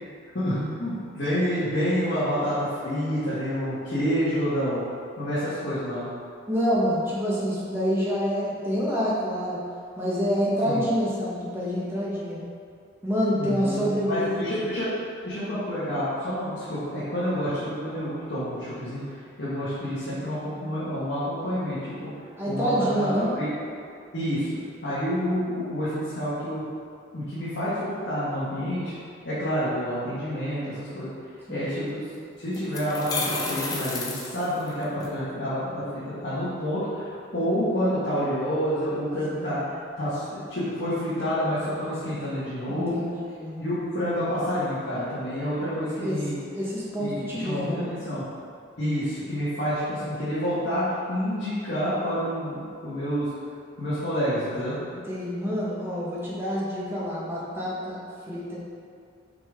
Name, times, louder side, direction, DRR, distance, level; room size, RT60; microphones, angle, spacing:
voice 1, 0.3-4.8 5.2-6.1 10.6-10.8 13.3-22.1 22.4-23.5 24.1-24.5 24.8-26.6 27.1-29.0 29.2-32.0 32.4-39.6 40.0-43.0 43.6-46.4 47.0-48.3 48.8-53.3 53.8-54.8, equal, 55° left, -13 dB, 1.5 m, -28 dB
voice 2, 6.5-9.6 10.0-12.4 13.0-14.4 17.2-17.3 22.4-23.3 31.5-31.7 39.3-39.6 42.7-43.0 43.3-43.8 46.0-46.2 46.5-47.8 55.0-58.0 58.2-58.6, equal, 10° right, -7 dB, 1.1 m, -27 dB
sound 1, 31.9-32.0 32.5-35.1, left 3 dB, 20° left, 0.5 m, -31 dB
5.8 x 5.2 x 3.6 m, 2.3 s
head